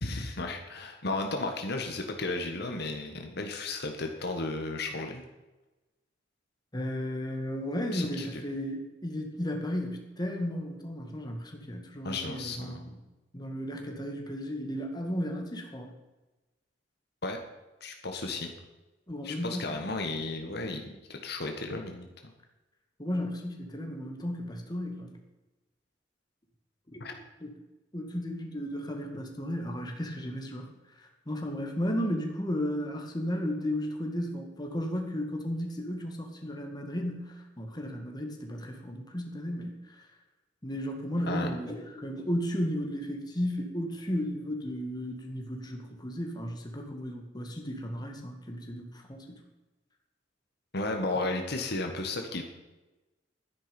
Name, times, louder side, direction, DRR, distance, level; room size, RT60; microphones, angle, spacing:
voice 1, 0.0-5.2 7.9-8.4 12.0-12.9 17.2-17.4 17.8-18.5 19.2-22.3 27.0-27.1 41.3-41.5 50.7-52.4, left 2 dB, 60° left, 4 dB, 1.6 m, -34 dB
voice 2, 6.7-13.0 13.3-16.0 19.1-19.7 23.0-25.1 26.9-27.0 27.4-27.5 27.9-30.7 31.0-39.8 40.6-49.4, equal, 25° left, 2 dB, 2.0 m, -34 dB
12.0 x 10.5 x 5.3 m, 1.1 s
head